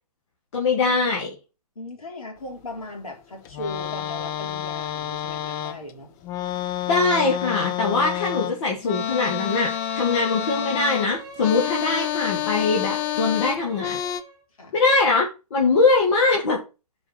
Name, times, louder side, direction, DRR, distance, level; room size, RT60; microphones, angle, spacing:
voice 1, 0.5-1.3 6.9-14.0 14.7-15.3 15.5-16.6, left 3 dB, 50° left, 2.3 m, -22 dB
voice 2, 1.8-6.1 14.6-14.8, left 2 dB, 65° left, 3.8 m, -37 dB
sound 1, 3.4-5.9 6.2-14.2, left 11 dB, 25° left, 0.8 m, -29 dB
Bowed string instrument, 9.3-14.4, right 2 dB, 20° right, 1.7 m, -42 dB
7.2 x 5.2 x 5.9 m
figure-of-eight pair, 125°, 20 cm